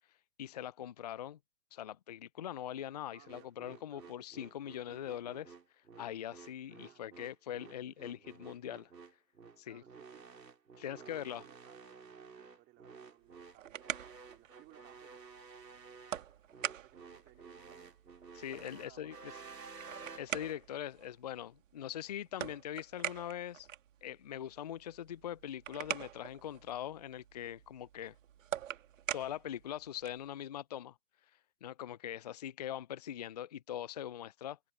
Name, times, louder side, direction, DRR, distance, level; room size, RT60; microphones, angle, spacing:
voice 1, 0.4-1.4 1.7-5.5 6.0-8.9 9.6-9.8 10.8-11.4 18.4-19.1 20.2-23.7 24.0-28.1 29.1-30.9 31.6-34.6, left 10 dB, 25° left, 0.6 m, -42 dB
voice 2, 3.1-3.5 3.9-4.3 6.7-7.3 7.6-8.3 9.6-10.3 10.8-14.0 14.3-15.2 16.7-18.0 18.7-19.7, right 18 dB, 20° right, 3.9 m, -62 dB
sound 1, 3.3-20.6, right 5 dB, 75° right, 4.1 m, -53 dB
sound 2, 13.2-30.3, right 10 dB, 50° right, 2.4 m, -45 dB
figure-of-eight pair, 130°, 50 cm